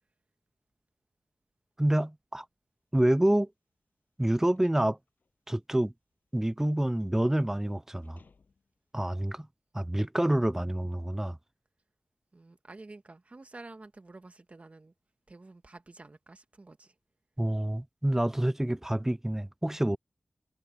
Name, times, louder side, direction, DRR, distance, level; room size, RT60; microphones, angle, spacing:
voice 1, 1.8-2.5 2.9-3.5 4.2-5.0 5.5-5.9 6.3-8.2 8.9-9.5 9.7-11.4 17.4-20.0, right 1 dB, 15° right, 0.4 m, -27 dB
sound 1, 3.4-8.9, left 4 dB, 80° left, 7.8 m, -67 dB
voice 2, 12.3-14.9 15.3-16.9, right 2 dB, 45° right, 2.0 m, -50 dB
cardioid pair, 50°, 3 cm